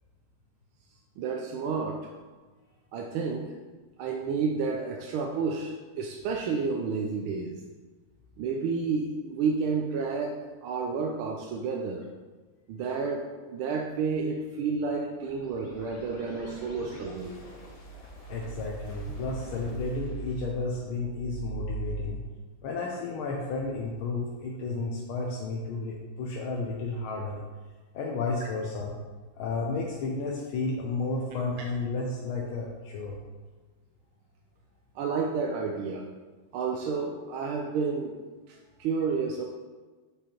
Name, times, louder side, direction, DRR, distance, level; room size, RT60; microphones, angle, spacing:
voice 1, 1.2-2.0 2.9-3.5 4.0-7.6 8.4-12.1 12.7-17.3 34.9-36.1 36.5-38.2 38.5-39.4, right 5 dB, 85° right, 1 dB, 1.5 m, -30 dB
sound 1, 15.2-22.0, right 3 dB, 55° left, 0.4 m, -41 dB
voice 2, 18.3-22.2 22.6-27.4 27.9-29.0 29.4-33.2, left 3 dB, 75° left, -2 dB, 1.6 m, -32 dB
7.3 x 5.4 x 4.4 m, 1.4 s
omnidirectional pair, 2.3 m